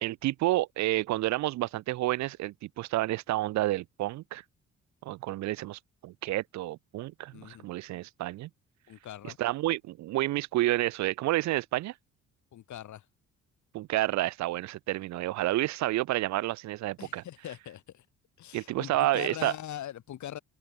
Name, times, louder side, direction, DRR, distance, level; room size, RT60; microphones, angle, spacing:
voice 1, 0.0-4.4 5.0-8.5 9.4-11.9 13.7-17.2 18.5-19.5, right 16 dB, 70° right, 0.4 m, -30 dB
voice 2, 7.3-7.6 8.9-9.4 12.5-13.1 17.0-18.1 18.4-20.4, left 11 dB, 70° left, 4.3 m, -41 dB
cardioid pair, 90°, 30 cm